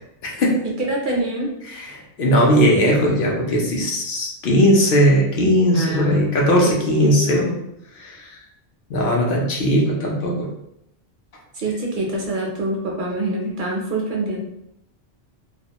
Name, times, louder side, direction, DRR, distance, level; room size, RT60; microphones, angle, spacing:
voice 1, 0.2-0.6 1.7-7.4 8.0-8.3 8.9-10.5, equal, 65° left, -2 dB, 0.7 m, -18 dB
voice 2, 0.9-1.5 5.7-6.3 6.7-7.6 11.5-14.4, right 1 dB, 60° right, -2 dB, 0.6 m, -25 dB
2.3 x 2.1 x 2.8 m, 0.81 s
omnidirectional pair, 1.1 m